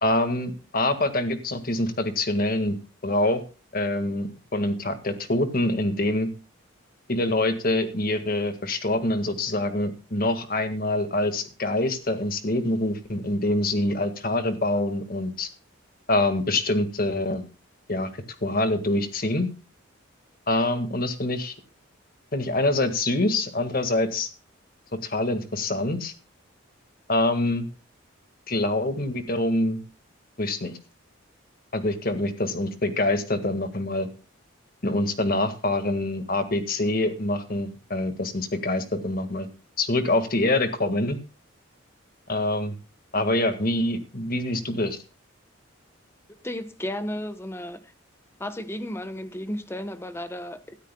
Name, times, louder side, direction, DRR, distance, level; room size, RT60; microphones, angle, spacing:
voice 1, 0.0-2.8 3.0-3.4 3.7-6.3 7.1-15.5 16.1-17.4 17.9-18.1 18.4-19.5 20.5-21.5 22.3-24.3 25.0-26.1 27.1-27.7 28.5-29.8 30.4-30.7 31.7-34.1 34.8-39.5 39.8-41.2 42.3-42.8 43.1-45.0, left 2 dB, 45° left, 1.7 m, -25 dB
voice 2, 46.4-47.9 48.4-50.8, left 1 dB, 10° left, 0.9 m, -33 dB
18.0 x 13.0 x 2.2 m
head